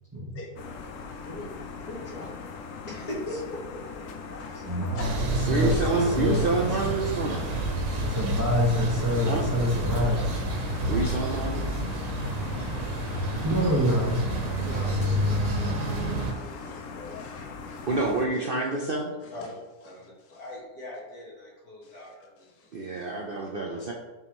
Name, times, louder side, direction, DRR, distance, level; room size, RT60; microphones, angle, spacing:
sound 1, 0.6-18.3, left 5 dB, 65° left, 1.0 m, -40 dB
voice 1, 1.0-2.3 2.8-4.0 13.4-13.6 14.6-17.2 18.3-18.4 19.3-19.5 19.8-22.5 23.3-23.8, left 1 dB, 80° left, -6 dB, 2.6 m, -41 dB
voice 2, 4.1-5.4 11.0-11.4 13.5-13.6 14.0-14.1 15.9-17.9 19.2-19.5 21.8-22.0 22.5-23.1, left 2 dB, 15° left, 1 dB, 0.6 m, -46 dB
voice 3, 4.6-6.5 6.8-6.9 8.0-10.3 13.4-14.2, left 1 dB, 15° right, -3 dB, 1.0 m, -26 dB
sound 2, 5.0-16.3, right 1 dB, 90° right, 1.5 m, -29 dB
voice 4, 5.5-7.5 9.3-9.4 10.9-11.6 17.9-19.2 22.7-23.9, right 3 dB, 55° right, -1 dB, 0.6 m, -27 dB
7.7 x 4.8 x 3.0 m, 1.2 s
omnidirectional pair, 1.6 m